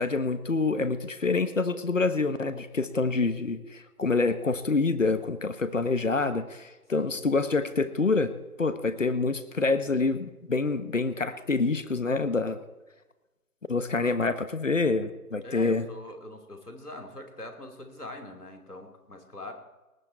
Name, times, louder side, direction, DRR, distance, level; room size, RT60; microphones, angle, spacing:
voice 1, 0.0-8.3 8.6-12.6 13.7-15.9, left 3 dB, 55° left, 11 dB, 1.2 m, -27 dB
voice 2, 15.4-19.5, left 1 dB, 90° left, 4 dB, 3.2 m, -42 dB
19.0 x 11.0 x 4.5 m, 1.1 s
figure-of-eight pair, 155°, 45 cm